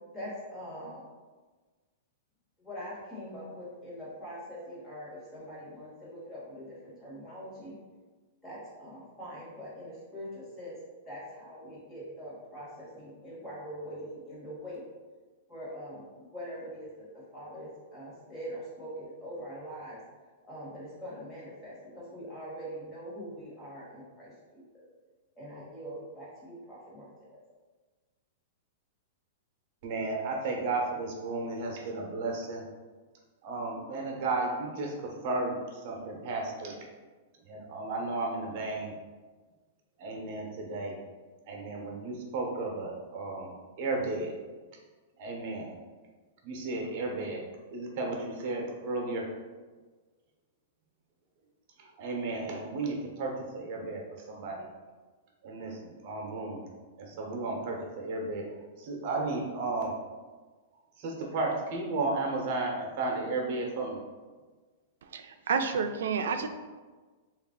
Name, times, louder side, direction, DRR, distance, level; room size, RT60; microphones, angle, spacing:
voice 1, 0.1-1.0 2.6-7.8 8.4-10.7 11.1-14.8 15.5-16.0 16.3-16.9 17.3-20.0 20.5-24.3 25.4-27.1, equal, 15° left, -8 dB, 1.2 m, -43 dB
voice 2, 29.8-32.6 33.4-36.8 37.4-38.9 40.0-41.0 41.5-43.5 43.8-44.3 45.2-45.7 46.4-47.4 47.7-49.3 51.8-54.0 54.3-54.6 55.4-56.6 57.0-58.4 58.8-60.0 61.0-64.0, right 3 dB, 45° right, 0 dB, 0.8 m, -33 dB
voice 3, 65.0-66.5, right 6 dB, 80° right, 7 dB, 0.3 m, -30 dB
3.2 x 2.4 x 3.7 m, 1.4 s
supercardioid pair, 160°, 0 cm